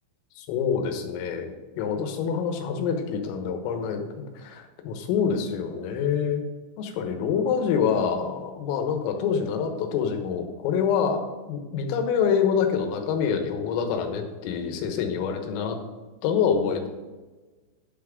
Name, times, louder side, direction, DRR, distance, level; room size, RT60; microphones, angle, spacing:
voice 1, 0.4-6.4 6.8-15.8 16.2-16.9, left 7 dB, 90° left, 5 dB, 3.9 m, -26 dB
11.5 x 6.0 x 5.1 m, 1.2 s
omnidirectional pair, 5.8 m